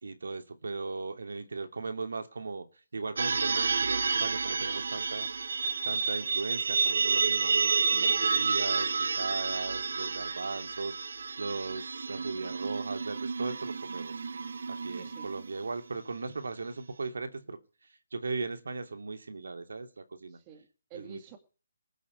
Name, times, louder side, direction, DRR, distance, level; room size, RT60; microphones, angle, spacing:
voice 1, 0.0-2.7 2.9-5.3 5.8-14.2 14.7-17.6 18.1-20.4 20.9-21.2, right 3 dB, 75° right, 2.8 m, -37 dB
sound 1, 3.2-15.7, right 5 dB, 60° right, 1.0 m, -30 dB
voice 2, 7.9-8.3 14.9-15.4 20.3-21.4, right 7 dB, 15° right, 2.2 m, -50 dB
20.0 x 8.3 x 8.2 m
hypercardioid pair, 175°, 0 cm